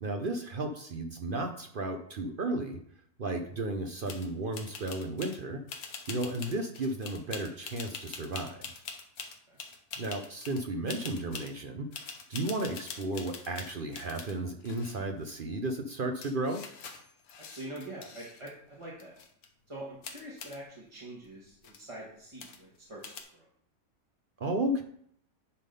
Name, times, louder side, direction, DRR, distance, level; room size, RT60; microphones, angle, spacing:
voice 1, 0.0-2.8 3.2-5.6 6.1-8.6 10.0-16.6 24.4-24.8, right 2 dB, 50° right, 6 dB, 0.7 m, -34 dB
sound 1, 4.1-4.3 4.5-5.4 5.7-10.6 10.9-11.5 11.9-14.3 14.6-15.3 15.9-16.0 16.2-18.5 18.8-19.5 20.0-20.6 21.2-21.3 21.5-21.8 22.4-22.8 23.0-23.2, left 5 dB, 90° left, 1.4 m, -44 dB
voice 2, 17.5-19.1 19.7-23.0 23.3-23.5, right 1 dB, 20° right, -5 dB, 1.5 m, -44 dB
9.7 x 3.7 x 5.2 m, 0.66 s
omnidirectional pair, 1.5 m